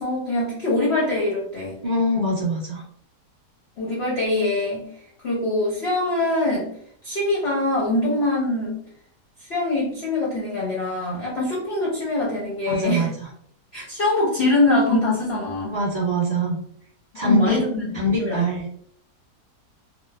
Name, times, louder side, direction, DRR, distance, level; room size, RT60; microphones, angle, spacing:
voice 1, 0.0-1.8 3.8-4.9 5.2-6.7 7.0-8.8 9.4-13.1 13.7-15.8 17.1-17.9 18.2-18.5, left 2 dB, 55° left, -6 dB, 0.7 m, -23 dB
voice 2, 1.8-2.8 12.7-13.1 15.7-16.6 17.1-17.6 17.9-18.7, equal, 30° right, -10 dB, 1.0 m, -23 dB
2.9 x 2.1 x 2.2 m, 0.64 s
omnidirectional pair, 1.8 m